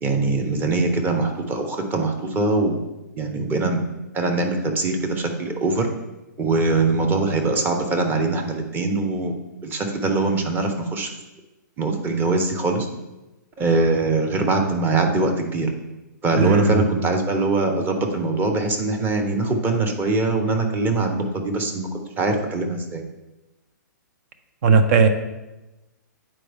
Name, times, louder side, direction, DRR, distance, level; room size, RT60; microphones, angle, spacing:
voice 1, 0.0-2.8 3.2-3.8 4.1-5.9 6.4-9.3 9.6-11.1 11.8-12.9 13.6-15.7 16.2-23.0, right 3 dB, 20° right, 4 dB, 0.9 m, -22 dB
voice 2, 16.4-16.9 24.6-25.1, right 5 dB, 50° right, 7 dB, 0.7 m, -16 dB
9.1 x 4.4 x 3.5 m, 1.0 s
hypercardioid pair, 130°, 10 cm